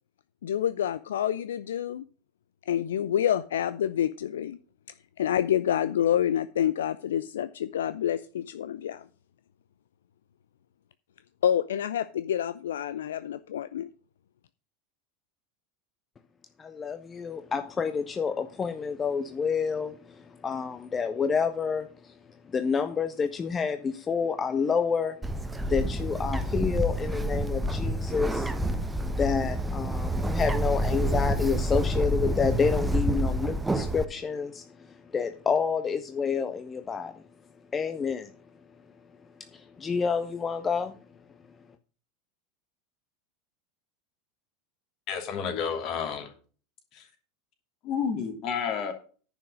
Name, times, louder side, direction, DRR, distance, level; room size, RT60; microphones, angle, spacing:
voice 1, 0.4-2.0 2.7-4.6 5.2-9.1 11.4-13.9, left 10 dB, 70° left, 14 dB, 0.4 m, -28 dB
voice 2, 16.6-22.1 22.5-25.2 25.6-28.5 29.0-37.2 37.7-38.3 39.5-40.9, left 5 dB, 25° left, 9 dB, 0.8 m, -29 dB
Bird, 25.2-34.0, right 1 dB, 10° right, 1.0 m, -28 dB
voice 3, 45.1-46.3 46.9-47.1 47.8-48.9, left 7 dB, 45° left, 5 dB, 2.8 m, -30 dB
10.5 x 6.2 x 6.4 m, 0.39 s
figure-of-eight pair, 80°, 0 cm